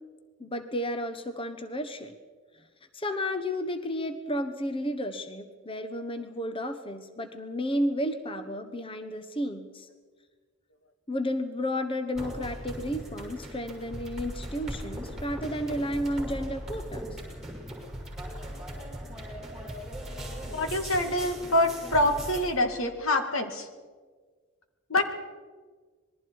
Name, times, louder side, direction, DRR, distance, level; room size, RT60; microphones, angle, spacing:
voice 1, 0.4-2.1 2.9-9.9 11.1-17.2, equal, 25° left, 8 dB, 1.1 m, -32 dB
sound 1, 12.1-22.4, equal, ahead, 6.2 m, -39 dB
voice 2, 20.3-23.7 24.9-25.0, left 1 dB, 80° left, 6 dB, 2.2 m, -26 dB
26.5 x 21.0 x 4.7 m, 1.5 s
head